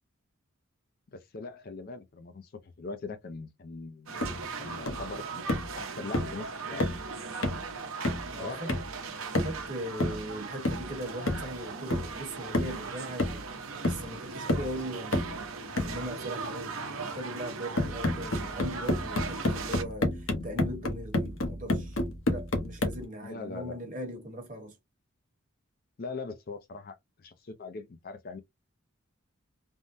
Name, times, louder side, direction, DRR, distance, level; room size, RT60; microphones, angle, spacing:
voice 1, 1.1-4.2 4.6-5.4 5.8-6.9 8.4-8.7 23.2-23.8 26.0-28.4, left 3 dB, 45° left, 0.4 m, -41 dB
sound 1, 4.1-19.8, right 4 dB, 80° right, 0.7 m, -39 dB
sound 2, 4.2-4.4 4.9-5.1 5.5-5.7 6.1-6.4 6.8-7.1 7.4-7.7 8.0-8.3 8.7-8.9 9.3-9.7 10.0-10.3 10.6-10.9 11.3-11.5 11.9-12.2 12.5-12.8 13.2-13.6 13.8-14.1 14.5-14.7 15.1-15.4 15.8-16.0 17.8-23.0, left 1 dB, 70° left, 0.9 m, -30 dB
voice 2, 8.3-8.7 9.3-13.5 13.8-15.3 15.8-22.0 22.3-24.8, right 1 dB, 40° right, 1.0 m, -39 dB
3.5 x 2.1 x 2.5 m
head